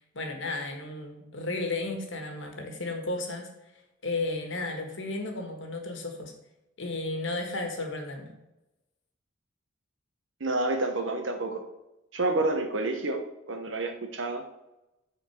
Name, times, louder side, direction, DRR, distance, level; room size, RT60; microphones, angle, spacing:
voice 1, 0.1-3.5 4.0-6.3 6.8-8.3, left 2 dB, 65° left, 3 dB, 1.6 m, -33 dB
voice 2, 10.4-11.6 12.1-14.4, right 2 dB, 65° right, 5 dB, 1.1 m, -29 dB
8.8 x 4.2 x 5.9 m, 0.95 s
head